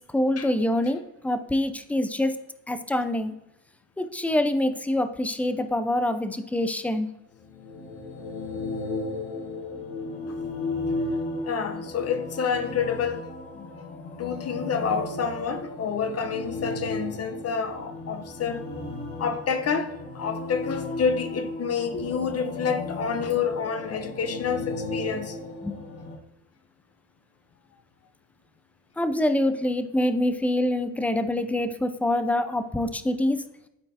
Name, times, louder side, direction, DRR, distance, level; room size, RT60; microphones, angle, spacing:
voice 1, 0.1-2.4 2.7-3.3 4.0-7.1 25.6-25.9 29.0-33.4, left 1 dB, 5° left, 0.4 m, -25 dB
sound 1, 7.4-26.2, left 2 dB, 85° left, 1.6 m, -35 dB
voice 2, 11.5-13.3 13.5-13.7 14.2-18.6 19.2-25.4, left 6 dB, 35° left, 0.9 m, -28 dB
12.0 x 4.4 x 2.7 m
supercardioid pair, 95°, 41 cm